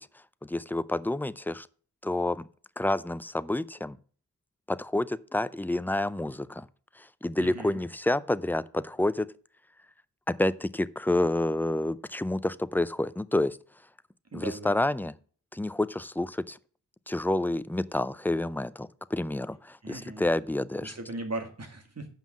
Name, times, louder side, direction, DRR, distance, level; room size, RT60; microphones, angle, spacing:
voice 1, 0.4-1.7 2.0-2.5 2.8-4.0 4.7-6.7 7.0-9.3 10.3-13.6 14.3-15.1 15.5-16.6 17.1-20.9, left 1 dB, 5° left, 0.4 m, -29 dB
voice 2, 7.4-7.8 14.3-14.7 19.8-20.2 20.8-22.1, right 2 dB, 40° right, 2.2 m, -38 dB
7.4 x 5.6 x 7.3 m
cardioid pair, 70°, 41 cm